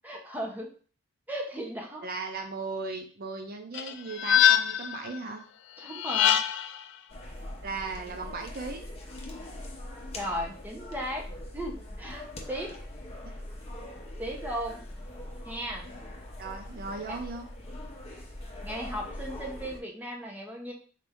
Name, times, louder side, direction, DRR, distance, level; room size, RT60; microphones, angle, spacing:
voice 1, 0.0-0.7 1.3-2.1 5.8-6.4 10.1-11.3 11.5-12.7 14.2-14.8 15.4-15.9 17.1-17.2 18.6-20.7, equal, 10° right, -1 dB, 0.8 m, -36 dB
voice 2, 2.0-5.4 7.6-8.8 16.4-17.5, right 3 dB, 50° right, 3 dB, 0.5 m, -37 dB
sound 1, 3.7-5.0 5.9-6.8, left 10 dB, 60° left, 0.3 m, -23 dB
sound 2, 7.1-19.8, left 1 dB, 30° left, 0.8 m, -42 dB
4.3 x 2.6 x 3.5 m, 0.42 s
head